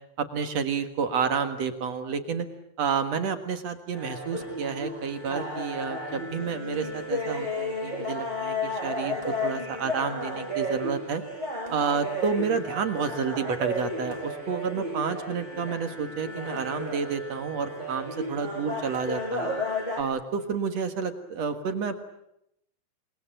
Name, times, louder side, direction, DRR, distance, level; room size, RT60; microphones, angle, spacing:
voice 1, 0.2-2.5 2.8-11.2 11.7-19.5 20.0-22.0, right 6 dB, 55° right, 8 dB, 2.2 m, -30 dB
sound 1, 3.9-20.0, left 1 dB, 10° right, 7.2 m, -33 dB
28.5 x 21.5 x 9.0 m, 0.79 s
omnidirectional pair, 4.7 m